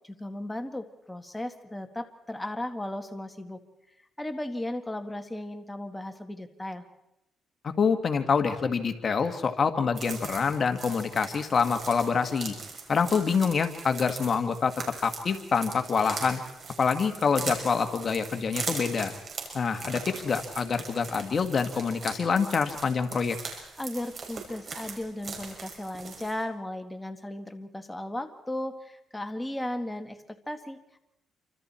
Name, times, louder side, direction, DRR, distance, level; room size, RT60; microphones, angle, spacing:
voice 1, 0.0-3.6 4.2-6.8 23.8-31.0, left 1 dB, 10° left, 6 dB, 1.8 m, -36 dB
voice 2, 7.6-12.6 12.9-14.8 15.0-16.4 16.8-19.1 19.5-23.4, left 5 dB, 45° left, 7 dB, 1.7 m, -26 dB
sound 1, 9.9-26.4, right 4 dB, 45° right, 6.4 m, -40 dB
28.0 x 25.5 x 4.4 m, 0.87 s
cardioid pair, 90°, 0 cm